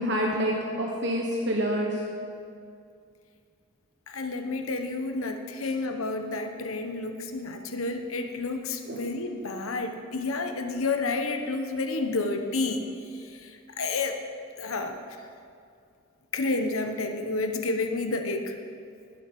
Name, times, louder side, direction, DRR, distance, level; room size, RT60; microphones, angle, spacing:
voice 1, 0.0-2.0 8.9-9.0, equal, 55° right, -1 dB, 1.1 m, -27 dB
voice 2, 4.1-12.9 13.1-14.2 14.6-15.0 16.3-18.5, left 3 dB, 85° left, 5 dB, 1.0 m, -30 dB
19.5 x 7.6 x 5.3 m, 2.3 s
head